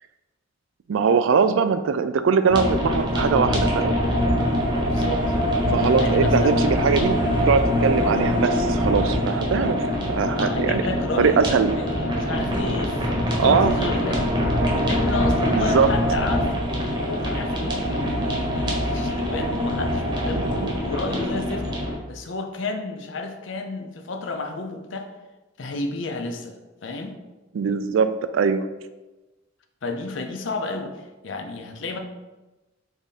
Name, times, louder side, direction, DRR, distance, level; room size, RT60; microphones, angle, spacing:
voice 1, 0.9-4.0 5.7-7.2 7.5-10.8 11.2-11.7 13.4-13.7 15.5-15.9 20.3-20.7 27.5-28.6, right 5 dB, 75° right, 11 dB, 0.3 m, -21 dB
sound 1, 2.5-22.0, equal, 20° right, 0.9 m, -23 dB
voice 2, 4.8-5.3 5.9-6.6 10.3-14.2 14.7-20.4 20.8-21.7 22.1-25.1 25.6-26.6 26.8-27.2 29.8-32.0, left 3 dB, 65° left, 5 dB, 0.5 m, -31 dB
3.5 x 3.5 x 4.1 m, 1.1 s
head